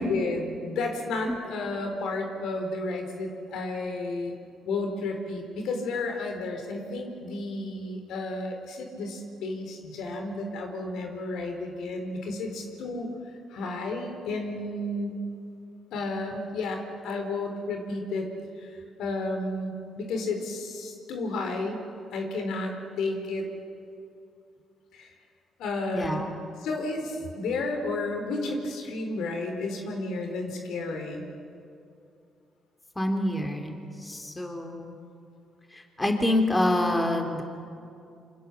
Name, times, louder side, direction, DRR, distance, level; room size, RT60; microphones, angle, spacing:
voice 1, 0.0-4.3 4.6-13.1 13.5-15.2 15.9-18.3 18.6-23.5 24.9-25.1 25.6-26.2 26.6-31.3, left 2 dB, 85° left, 4 dB, 4.4 m, -32 dB
voice 2, 25.9-26.3 33.0-35.0 35.7-37.4, left 1 dB, 15° left, 3 dB, 3.7 m, -27 dB
27.5 x 26.5 x 7.5 m, 2.5 s
cardioid pair, 90°, 0 cm